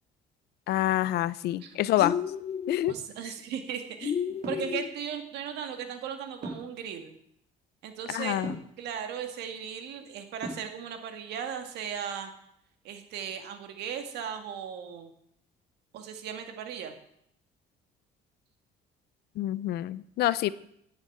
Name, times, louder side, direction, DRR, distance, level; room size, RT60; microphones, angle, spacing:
voice 1, 0.7-2.2 2.7-2.9 8.1-8.5 19.4-20.5, left 14 dB, 75° left, 17 dB, 0.7 m, -27 dB
voice 2, 1.6-2.1 2.9-7.1 7.8-8.4 8.8-12.3 12.8-15.1 15.9-16.9, right 8 dB, 80° right, 6 dB, 2.2 m, -37 dB
sound 1, 2.0-2.9 4.0-4.9, left 7 dB, 40° left, 0.9 m, -32 dB
sound 2, 4.4-4.7 6.4-6.8 8.4-8.7 10.4-10.8, right 3 dB, 50° right, 4.7 m, -37 dB
11.0 x 8.9 x 8.6 m, 0.73 s
cardioid pair, 110°, 17 cm